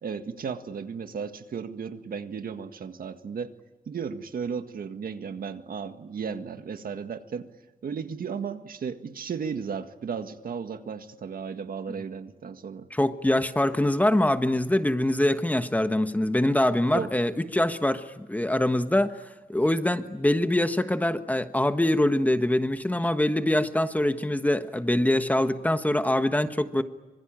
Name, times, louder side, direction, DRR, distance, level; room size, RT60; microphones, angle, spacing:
voice 1, 0.0-3.5 3.9-7.5 7.8-12.9 16.9-17.1, right 6 dB, 85° right, 8 dB, 1.8 m, -34 dB
voice 2, 12.9-19.2 19.5-26.8, left 1 dB, 10° left, 9 dB, 1.3 m, -24 dB
26.0 x 24.5 x 9.0 m, 1.2 s
wide cardioid pair, 125°, 15 cm